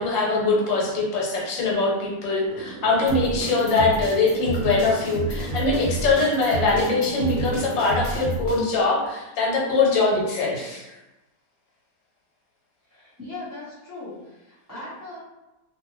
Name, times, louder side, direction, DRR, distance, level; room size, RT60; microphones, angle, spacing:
voice 1, 0.0-10.9, left 3 dB, 85° left, -3 dB, 1.5 m, -22 dB
sound 1, 2.4-7.9, right 3 dB, 65° right, 0.8 m, -38 dB
sound 2, 3.1-8.6, right 2 dB, 70° left, 1.3 m, -30 dB
voice 2, 12.9-15.2, left 2 dB, 15° right, -11 dB, 0.7 m, -39 dB
2.8 x 2.6 x 3.0 m, 1.0 s
omnidirectional pair, 1.9 m